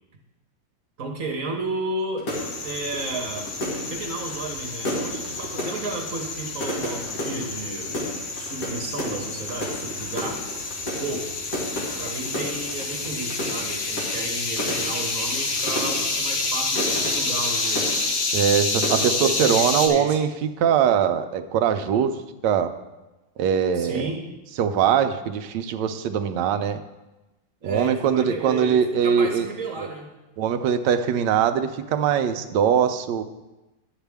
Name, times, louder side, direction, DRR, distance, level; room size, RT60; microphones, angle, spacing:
voice 1, 1.0-2.3 2.6-3.5 3.8-8.0 8.3-10.4 10.8-11.3 12.0-17.9 18.8-20.2 23.7-24.2 27.6-30.1, right 2 dB, 50° right, 2 dB, 1.3 m, -33 dB
sound 1, 2.2-18.6 18.8-19.4, equal, 50° left, 2.1 m, -33 dB
sound 2, 2.3-19.9, left 3 dB, 70° left, 1.8 m, -29 dB
voice 2, 18.3-20.3 20.6-22.7 23.4-24.1 24.6-26.8 27.6-29.5 30.4-33.2, right 8 dB, 75° right, 9 dB, 1.2 m, -22 dB
10.5 x 8.1 x 3.4 m, 1.0 s
omnidirectional pair, 2.0 m